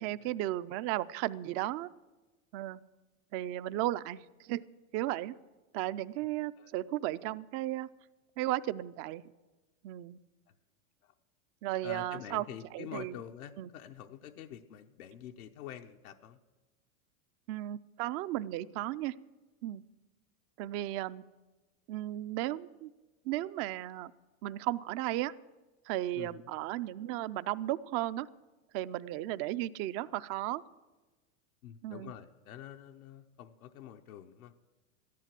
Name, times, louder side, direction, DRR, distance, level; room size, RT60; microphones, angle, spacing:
voice 1, 0.0-1.9 2.5-2.8 3.3-4.6 4.9-5.4 5.7-7.9 8.4-9.2 9.8-10.2 11.6-12.4 12.7-13.1 13.6-13.7 17.5-19.1 19.6-19.8 20.6-21.2 21.9-22.9 23.3-24.1 24.4-25.3 25.9-28.3 28.7-30.6 31.8-32.1, right 15 dB, 35° right, 15 dB, 0.4 m, -35 dB
voice 2, 11.8-16.4 26.1-26.5 31.6-34.5, left 10 dB, 85° left, 4 dB, 0.9 m, -47 dB
13.5 x 11.0 x 7.5 m, 1.2 s
supercardioid pair, 130°, 42 cm